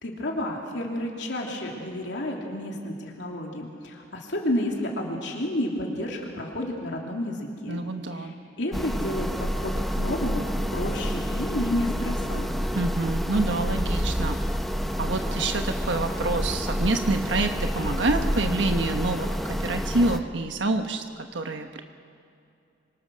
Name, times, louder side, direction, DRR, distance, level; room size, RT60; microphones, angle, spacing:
voice 1, 0.0-7.8 8.1-10.4 10.7-12.5, left 1 dB, 75° left, -1 dB, 2.9 m, -31 dB
voice 2, 7.7-8.3 12.7-14.4 15.0-21.0 21.3-21.8, right 2 dB, 90° right, 5 dB, 1.2 m, -27 dB
sound 1, 8.7-20.2, equal, ahead, 0.9 m, -28 dB
28.0 x 25.0 x 6.4 m, 2.5 s
head